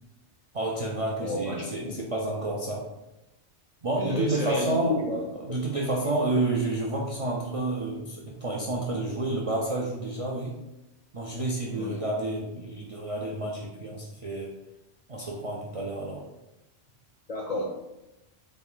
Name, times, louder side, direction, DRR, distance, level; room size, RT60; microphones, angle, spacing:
voice 1, 0.5-2.9 3.8-5.0 5.5-10.6 11.1-14.5 15.1-16.3, right 2 dB, 55° right, -3 dB, 0.4 m, -29 dB
voice 2, 1.1-1.7 4.0-5.2 6.0-6.1 11.7-12.0 17.3-17.6, left 2 dB, 55° left, -1 dB, 0.4 m, -31 dB
4.1 x 2.3 x 3.7 m, 0.96 s
omnidirectional pair, 1.2 m